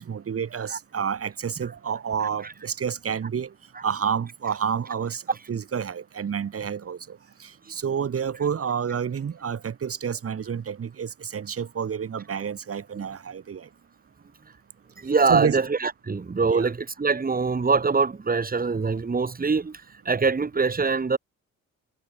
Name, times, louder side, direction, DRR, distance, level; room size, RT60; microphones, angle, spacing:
voice 1, 0.0-3.5 3.8-13.7 15.0-15.6 16.5-16.7, right 7 dB, 50° right, 5.3 m, -29 dB
voice 2, 15.0-21.2, right 4 dB, 30° right, 5.6 m, -24 dB
cardioid pair, 90°, 30 cm